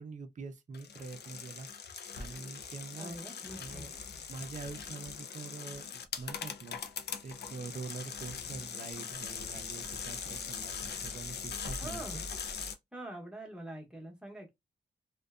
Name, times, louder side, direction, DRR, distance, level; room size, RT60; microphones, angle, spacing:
voice 1, 0.0-3.2 3.6-3.9 4.3-5.8 6.2-6.8 7.2-12.2, right 4 dB, 40° right, 0.5 m, -45 dB
sound 1, 0.7-12.7, left 6 dB, 60° left, 0.4 m, -41 dB
voice 2, 2.9-3.9 11.8-12.2 12.9-14.5, right 1 dB, 5° right, 0.8 m, -45 dB
2.5 x 2.1 x 2.3 m
wide cardioid pair, 120°, 19 cm